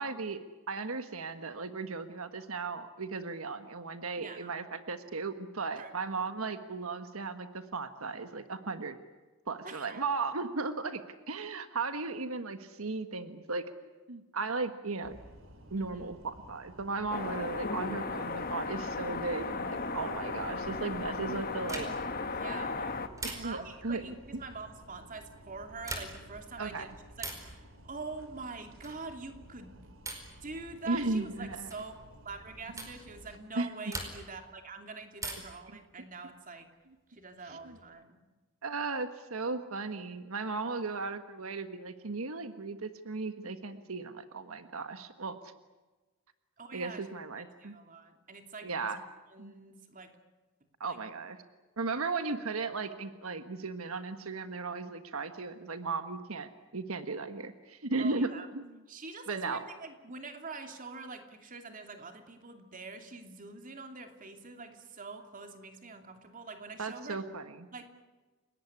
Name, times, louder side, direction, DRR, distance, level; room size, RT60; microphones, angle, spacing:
voice 1, 0.0-9.0 9.5-11.0 11.3-13.6 14.1-15.2 15.7-21.9 23.2-24.0 26.6-26.9 30.9-31.7 33.5-33.7 37.6-37.8 38.6-45.5 46.7-47.7 48.6-49.0 49.4-49.5 50.8-51.4 51.8-58.7 59.3-59.6 66.8-67.7, right 3 dB, 90° right, 9 dB, 1.4 m, -36 dB
voice 2, 4.2-4.5 5.8-5.9 9.6-10.0 15.8-16.0 22.3-23.0 23.4-26.9 27.2-29.8 30.4-36.7 37.1-38.2 40.8-41.0 46.6-47.0 47.3-48.9 49.3-50.2 50.8-51.0 58.0-58.5 58.9-67.2 67.7-67.8, right 4 dB, 40° right, 5 dB, 2.8 m, -45 dB
sound 1, 15.0-33.4, right 1 dB, 70° right, 3.5 m, -54 dB
sound 2, 17.1-23.1, left 3 dB, 45° left, 1.6 m, -36 dB
sound 3, 21.6-22.2 23.2-23.8 25.7-26.4 27.2-27.6 28.8-29.1 30.0-30.4 31.7-31.9 32.8-33.0 33.9-34.4 35.2-35.7 37.1-37.8, right 2 dB, 15° right, 4.8 m, -41 dB
30.0 x 18.0 x 9.8 m, 1.2 s
head